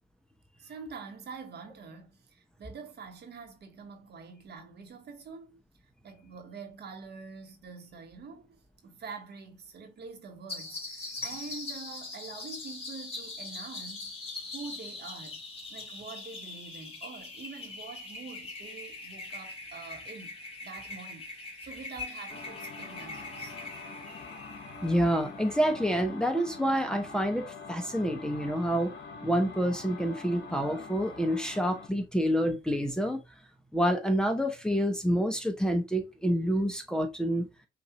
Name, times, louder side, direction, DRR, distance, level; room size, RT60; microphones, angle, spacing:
voice 1, 0.6-5.6 6.0-14.1 14.5-15.4 15.7-23.6, right 5 dB, 55° right, 1.3 m, -45 dB
sound 1, 10.5-25.7, left 3 dB, 30° left, 2.3 m, -42 dB
sound 2, 22.3-31.9, left 4 dB, 60° left, 1.2 m, -45 dB
voice 2, 24.8-28.9 29.2-33.2 33.7-37.5, equal, 5° left, 0.9 m, -28 dB
5.9 x 2.6 x 2.9 m
cardioid pair, 90°, 20 cm